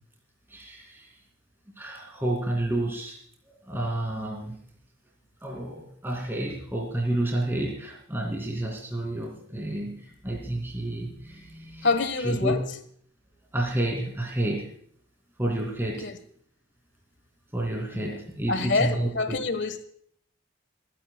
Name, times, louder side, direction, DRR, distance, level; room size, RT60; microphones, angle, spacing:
voice 1, 0.5-1.1 1.8-4.6 5.4-11.9 12.2-12.6 13.5-14.7 15.4-16.1 17.5-19.4, right 1 dB, 10° right, 2.7 m, -30 dB
voice 2, 11.8-12.6 16.0-16.2 17.9-18.0 18.5-19.8, left 3 dB, 65° left, 1.4 m, -26 dB
28.0 x 10.5 x 2.3 m
head